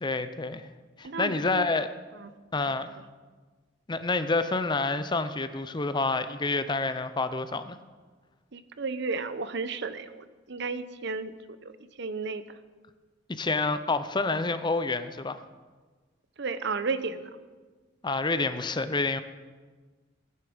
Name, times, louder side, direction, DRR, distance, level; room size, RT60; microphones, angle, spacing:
voice 1, 0.0-0.7 1.0-1.9 2.5-2.9 3.9-7.8 13.3-15.4 18.0-19.2, left 3 dB, 25° left, 11 dB, 0.6 m, -28 dB
voice 2, 1.0-1.7 2.2-2.3 2.9-3.0 8.5-11.3 11.6-12.4 16.4-17.3, right 4 dB, 65° right, 13 dB, 0.8 m, -33 dB
20.5 x 9.7 x 5.1 m, 1.4 s
head